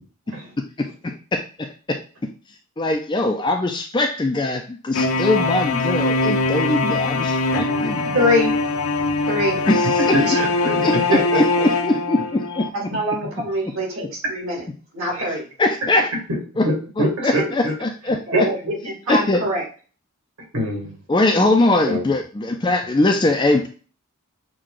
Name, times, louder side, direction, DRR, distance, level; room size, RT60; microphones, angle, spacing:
voice 1, 0.8-2.0 2.8-8.2 9.7-10.1 10.8-10.9 11.3-12.7 15.6-16.1 16.6-16.7 17.0-18.2 19.1-19.4 21.1-23.7, left 2 dB, 20° left, 3 dB, 0.3 m, -21 dB
sound 1, 4.9-12.7, left 3 dB, 70° left, 0.6 m, -22 dB
voice 2, 8.1-8.5 9.3-9.6 12.7-14.6 14.9-15.5 18.4-18.6 18.8-19.6, left 1 dB, 65° right, -1 dB, 1.9 m, -23 dB
voice 3, 10.1-11.4 15.1-15.3 16.6-17.7 18.3-18.7 20.5-20.9 21.8-22.0, right 1 dB, 85° right, -1 dB, 2.4 m, -23 dB
6.3 x 2.2 x 3.7 m, 0.38 s
head